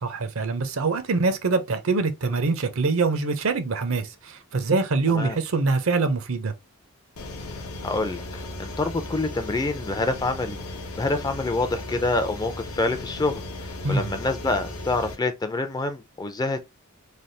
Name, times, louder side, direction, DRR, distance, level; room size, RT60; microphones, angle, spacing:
voice 1, 0.0-6.5 13.8-14.1, right 3 dB, 65° right, 0.6 m, -24 dB
voice 2, 5.1-5.4 7.5-10.6 11.0-16.6, left 2 dB, 20° left, 0.4 m, -27 dB
sound 1, 7.2-15.2, left 2 dB, 85° left, 0.8 m, -36 dB
3.3 x 2.3 x 2.6 m
head